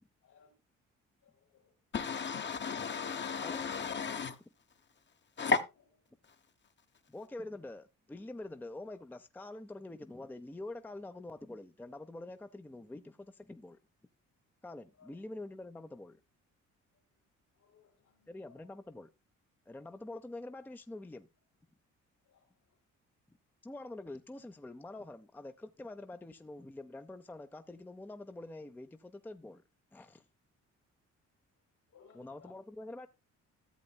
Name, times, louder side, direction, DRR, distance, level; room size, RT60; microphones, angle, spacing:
voice 1, 0.2-0.5 1.2-1.7 15.0-15.2 17.5-18.7 22.2-22.4 31.9-32.6, left 7 dB, 75° left, 2.6 m, -63 dB
voice 2, 1.9-4.4 5.4-5.6, left 4 dB, 35° left, 0.9 m, -33 dB
voice 3, 7.1-13.8 14.6-16.2 18.3-19.1 19.7-21.3 23.3-23.4 23.6-29.6 29.9-30.2 32.1-33.1, left 2 dB, 5° left, 0.5 m, -46 dB
14.0 x 7.8 x 2.2 m
cardioid pair, 90°, 30 cm